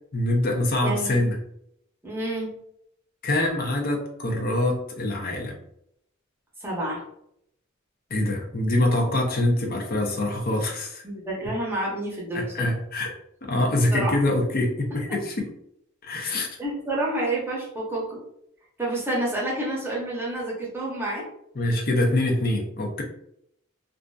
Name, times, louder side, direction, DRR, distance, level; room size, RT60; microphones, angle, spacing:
voice 1, 0.1-1.4 3.2-5.5 8.1-11.0 12.3-13.1 13.4-15.5 16.0-16.6 21.6-23.0, left 1 dB, 45° left, 1 dB, 0.5 m, -24 dB
voice 2, 0.8-1.2 2.0-2.5 6.6-7.0 11.0-12.7 13.9-14.1 16.6-18.2 18.8-21.2, right 1 dB, 10° right, -5 dB, 0.7 m, -29 dB
2.5 x 2.5 x 2.2 m, 0.74 s
head